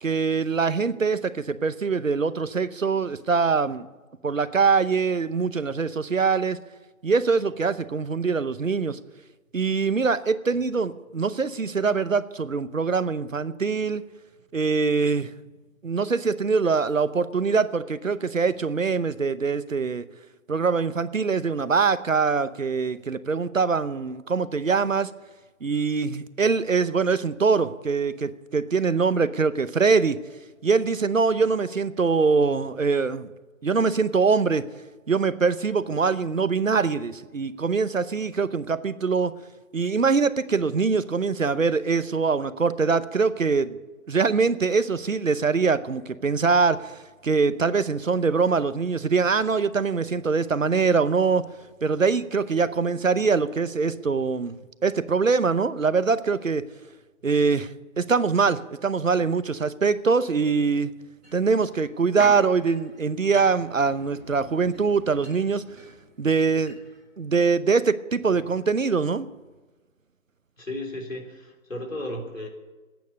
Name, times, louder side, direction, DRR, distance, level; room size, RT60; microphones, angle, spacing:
voice 1, 0.0-3.9 4.2-6.6 7.0-9.0 9.5-14.0 14.5-15.3 15.8-20.1 20.5-25.1 25.6-30.2 30.6-33.3 33.6-34.6 35.1-39.3 39.7-43.8 44.1-51.5 51.8-56.6 57.2-60.9 61.3-65.6 66.2-66.8 67.2-69.3, right 5 dB, 70° right, 14 dB, 0.9 m, -23 dB
sound 1, 61.2-67.0 67.3-67.4, right 1 dB, 5° right, 4.4 m, -43 dB
voice 2, 70.6-72.5, left 1 dB, 70° left, 2 dB, 3.8 m, -34 dB
13.5 x 9.4 x 9.4 m, 1.2 s
figure-of-eight pair, 180°, 41 cm